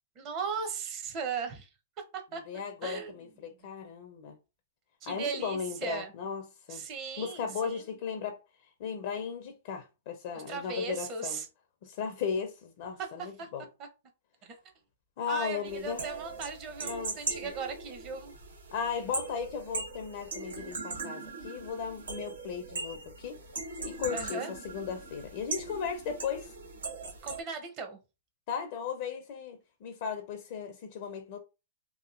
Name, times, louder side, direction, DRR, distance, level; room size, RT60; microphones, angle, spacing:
voice 1, 0.2-1.7 2.1-2.4 2.8-3.3 5.0-6.1 6.7-8.0 10.3-11.5 13.0-13.1 13.4-13.5 14.4-14.6 15.3-18.4 24.1-24.5 27.2-28.0, right 5 dB, 35° right, 0.7 m, -37 dB
voice 2, 2.5-4.4 5.1-6.4 6.7-6.8 7.2-8.4 8.8-11.4 11.8-13.6 15.2-16.1 16.8-17.2 18.7-23.4 23.8-26.5 28.5-31.4, left 6 dB, 50° left, 0.5 m, -36 dB
sound 1, 15.6-27.4, right 4 dB, 90° right, 0.9 m, -40 dB
2.9 x 2.4 x 2.4 m
hypercardioid pair, 130°, 0 cm